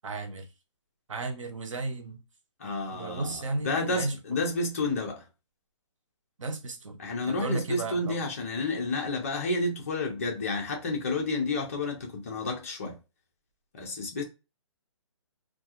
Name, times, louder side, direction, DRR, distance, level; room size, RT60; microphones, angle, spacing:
voice 1, 0.0-0.5 1.1-2.2 2.9-4.4 6.4-8.2, right 3 dB, 85° right, 0.8 m, -34 dB
voice 2, 2.6-5.2 7.0-13.0 13.7-14.2, left 2 dB, 30° left, 0.7 m, -30 dB
2.4 x 2.3 x 2.9 m
hypercardioid pair, 175°, 16 cm